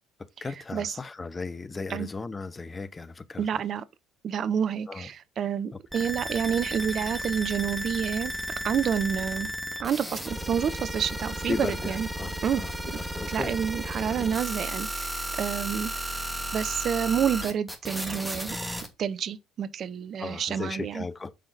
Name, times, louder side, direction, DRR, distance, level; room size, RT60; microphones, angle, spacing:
voice 1, 0.4-3.6 4.9-5.1 11.5-13.6 20.2-21.4, left 3 dB, 25° left, 0.8 m, -36 dB
voice 2, 3.4-3.8 4.2-8.3 8.6-9.5 9.8-11.5 11.9-12.1 12.4-12.6 12.9-13.0 13.3-15.9 16.5-18.6 19.0-21.0, right 8 dB, 45° right, 0.7 m, -29 dB
sound 1, 5.9-18.9, equal, ahead, 2.5 m, -34 dB
8.4 x 5.8 x 4.1 m
figure-of-eight pair, 55°, 0 cm